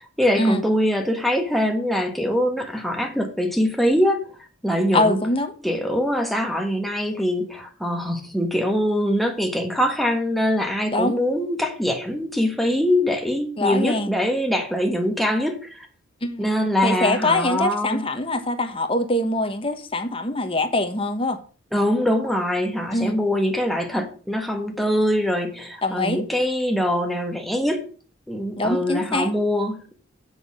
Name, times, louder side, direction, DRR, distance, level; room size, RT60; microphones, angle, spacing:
voice 1, 0.2-4.2 4.6-5.2 5.6-15.5 16.4-18.0 21.7-27.8 28.3-29.9, equal, ahead, 1.4 m, -23 dB
voice 2, 4.9-5.5 10.9-11.2 13.6-14.1 16.2-16.5 16.8-21.4 22.9-23.2 25.8-26.2 28.6-29.3, left 2 dB, 25° left, 1.1 m, -23 dB
8.0 x 6.3 x 6.3 m
head